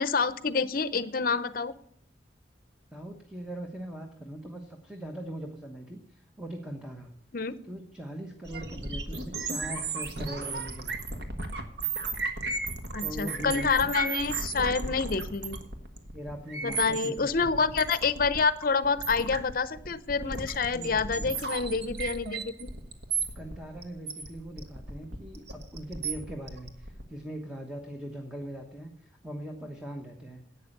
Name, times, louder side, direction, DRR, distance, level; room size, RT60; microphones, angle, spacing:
voice 1, 0.0-1.7 7.3-7.6 12.9-15.6 16.6-22.7, left 4 dB, 50° left, 15 dB, 0.7 m, -28 dB
voice 2, 2.9-7.1 7.7-11.3 13.0-13.9 16.1-17.7 20.7-21.3 23.3-30.4, right 1 dB, 5° right, 3 dB, 1.1 m, -41 dB
sound 1, 8.5-27.0, right 3 dB, 70° right, 1.5 m, -35 dB
11.5 x 8.8 x 6.6 m, 0.69 s
head